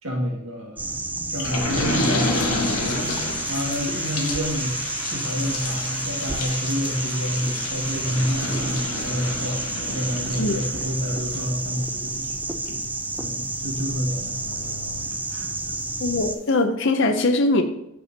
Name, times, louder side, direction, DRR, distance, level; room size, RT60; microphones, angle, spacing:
voice 1, 0.0-9.6 9.9-12.5 13.2-14.4 15.3-15.8, equal, 70° right, -2 dB, 2.1 m, -29 dB
sound 1, 0.8-16.4, right 2 dB, 10° right, 0.3 m, -30 dB
sound 2, 1.4-15.7 16.1-16.2 16.5-16.6, left 2 dB, 90° left, 1.4 m, -31 dB
voice 2, 16.0-17.6, left 2 dB, 55° left, 7 dB, 0.7 m, -21 dB
6.3 x 5.6 x 4.4 m, 0.81 s
head